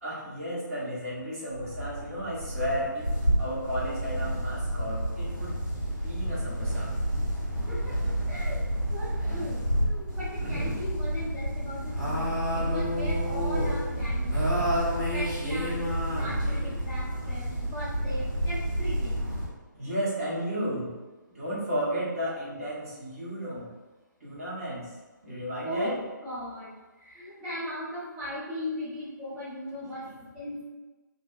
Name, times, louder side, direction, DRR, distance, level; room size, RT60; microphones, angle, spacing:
voice 1, 0.0-5.6 6.0-6.9 10.4-10.7 19.8-20.9 21.3-23.7 24.2-24.9 25.2-26.0 29.8-29.9, equal, 45° right, -8 dB, 1.1 m, -33 dB
sound 1, 1.5-19.5, equal, 90° right, 1.3 m, -29 dB
voice 2, 7.7-8.6 8.9-14.7 15.1-15.8 16.1-19.3 25.6-30.6, left 1 dB, 10° right, -14 dB, 0.6 m, -38 dB
2.6 x 2.1 x 2.3 m, 1.2 s
figure-of-eight pair, 140°, 11 cm